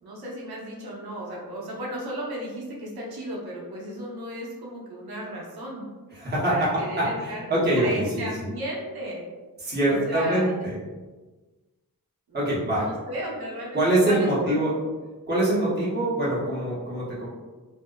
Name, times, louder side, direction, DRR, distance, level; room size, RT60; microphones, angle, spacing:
voice 1, 0.0-5.8 6.5-7.5 7.8-9.2 9.9-10.5 12.3-14.6, right 1 dB, 90° right, -3 dB, 0.8 m, -35 dB
voice 2, 6.1-8.3 9.6-10.8 12.3-12.9 13.7-14.7 15.3-17.3, right 1 dB, 25° right, -8 dB, 0.9 m, -24 dB
2.6 x 2.0 x 2.2 m, 1.3 s
wide cardioid pair, 100°, 37 cm